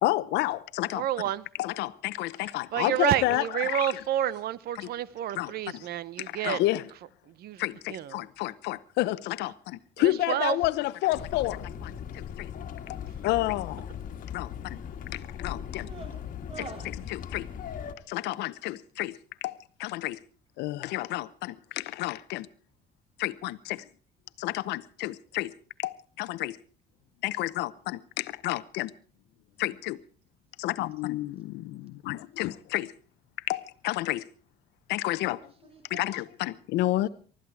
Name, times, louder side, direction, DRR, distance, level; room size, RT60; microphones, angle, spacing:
voice 1, 0.0-1.0 1.6-3.9 4.8-4.9 5.3-5.8 6.2-6.9 7.6-12.5 13.2-13.9 14.3-14.8 15.1-15.9 17.1-17.5 18.1-20.2 20.6-22.5 23.2-23.8 24.4-25.5 25.8-26.6 27.2-28.9 29.6-30.0 30.6-31.7 32.1-32.9 33.5-34.2 34.9-35.4 35.9-37.1, left 17 dB, 85° left, 0.8 m, -30 dB
voice 2, 0.9-1.4 2.7-6.6 7.4-8.2 10.0-10.6, right 11 dB, 65° right, 0.9 m, -29 dB
sound 1, 11.1-17.9, left 8 dB, 55° left, 1.8 m, -39 dB
voice 3, 15.8-16.2 16.5-17.0 35.2-36.1 36.8-37.1, right 4 dB, 35° right, 3.3 m, -45 dB
20.0 x 13.5 x 4.7 m
cardioid pair, 110°, 17 cm